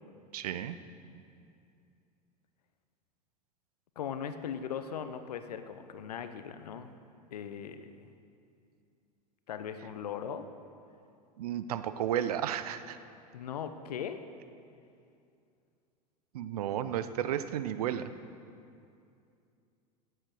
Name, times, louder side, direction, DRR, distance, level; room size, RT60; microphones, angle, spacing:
voice 1, 0.3-0.8 11.4-13.0 16.3-18.1, right 10 dB, 65° right, 12 dB, 0.7 m, -33 dB
voice 2, 4.0-6.9 7.3-8.1 9.5-10.5 13.3-14.2, left 8 dB, 70° left, 10 dB, 0.9 m, -39 dB
16.0 x 8.1 x 6.5 m, 2.5 s
figure-of-eight pair, 85°, 21 cm